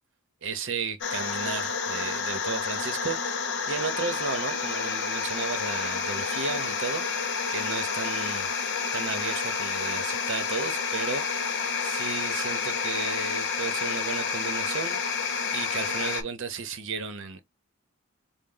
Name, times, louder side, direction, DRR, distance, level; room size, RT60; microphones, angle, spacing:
voice 1, 0.4-7.2 7.5-8.6 8.9-15.0 15.5-17.4, right 5 dB, 60° right, 0.8 m, -34 dB
sound 1, 1.0-16.2, left 5 dB, 55° left, 0.8 m, -29 dB
4.1 x 2.0 x 3.8 m
head